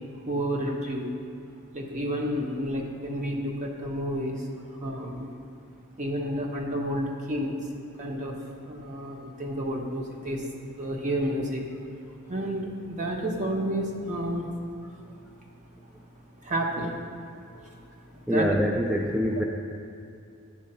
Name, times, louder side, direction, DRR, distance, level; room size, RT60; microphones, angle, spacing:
voice 1, 0.3-1.1 1.7-4.4 4.8-5.3 6.0-7.6 8.0-8.3 8.7-10.4 10.8-11.6 12.3-14.5 16.5-16.9 18.3-18.6, equal, 35° right, 0 dB, 1.0 m, -30 dB
voice 2, 18.3-19.4, equal, ahead, -1 dB, 0.3 m, -25 dB
10.0 x 4.9 x 5.5 m, 2.6 s
head